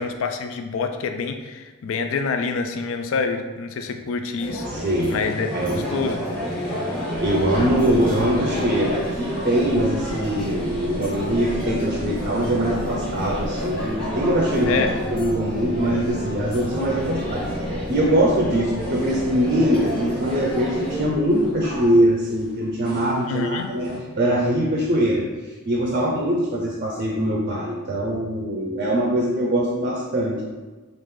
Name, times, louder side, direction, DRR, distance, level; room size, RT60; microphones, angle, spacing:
voice 1, 0.0-4.7 5.1-6.2 14.7-14.9 23.3-23.7, left 4 dB, 60° left, 6 dB, 0.3 m, -27 dB
sound 1, 4.4-21.1, equal, 5° left, 0.9 m, -30 dB
sound 2, 4.6-16.2 16.4-17.8 18.4-24.0, equal, 45° left, 0.7 m, -40 dB
voice 2, 4.7-5.2 5.5-5.8 7.2-30.4, right 1 dB, 40° right, -2 dB, 0.5 m, -22 dB
sound 3, 7.1-21.9, equal, 20° left, 1.4 m, -35 dB
3.6 x 2.5 x 3.1 m, 1.3 s
head